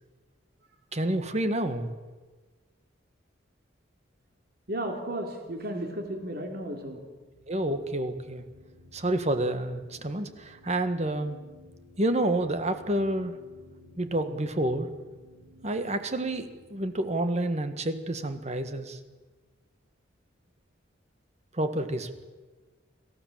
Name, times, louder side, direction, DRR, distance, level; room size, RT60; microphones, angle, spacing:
voice 1, 0.9-2.0 7.5-8.4 8.9-11.4 12.0-13.4 14.0-14.9 15.6-19.0 21.5-22.1, right 1 dB, 35° right, 9 dB, 1.6 m, -29 dB
voice 2, 4.7-7.0, right 1 dB, 50° right, 3 dB, 3.1 m, -34 dB
sound 1, 6.1-19.4, left 1 dB, 80° right, 3.6 m, -56 dB
25.5 x 15.0 x 7.4 m, 1.3 s
head